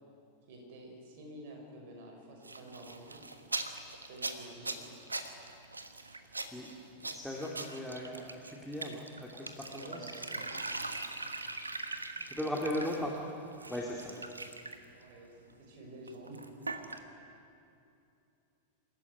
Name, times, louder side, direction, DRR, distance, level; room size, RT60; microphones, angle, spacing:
voice 1, 0.5-3.2 4.1-4.8 9.7-11.1 12.2-12.9 14.9-16.4 17.0-17.2, right 2 dB, 50° right, 1 dB, 6.0 m, -50 dB
sound 1, 2.4-13.2 13.5-14.8 16.1-17.0, right 3 dB, 80° right, 1.3 m, -41 dB
voice 2, 7.0-10.1 12.3-13.1 13.7-14.3, left 1 dB, ahead, -3 dB, 2.8 m, -38 dB
25.5 x 14.0 x 9.7 m, 2.7 s
figure-of-eight pair, 90°, 0 cm